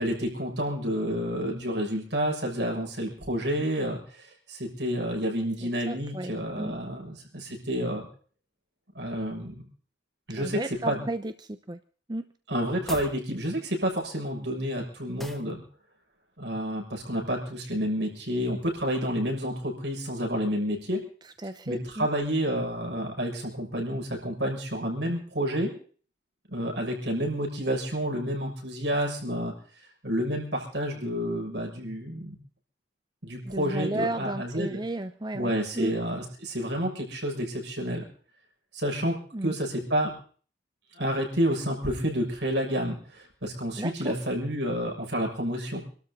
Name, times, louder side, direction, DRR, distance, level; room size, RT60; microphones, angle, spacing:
voice 1, 0.0-8.1 8.9-9.5 10.3-11.0 12.5-15.6 16.4-21.0 21.6-25.7 26.5-29.5 30.0-32.3 33.2-34.8 35.3-38.0 38.7-39.2 39.4-40.1 40.9-45.8, equal, 75° right, 0 dB, 6.8 m, -29 dB
voice 2, 5.6-6.7 10.3-11.8 12.1-12.3 21.4-22.1 33.4-35.9 39.3-39.5 43.8-44.1, right 1 dB, 25° right, 10 dB, 0.7 m, -33 dB
sound 1, 12.8-13.2 15.2-15.5, equal, ahead, 1.4 m, -40 dB
26.5 x 13.0 x 4.1 m, 0.43 s
head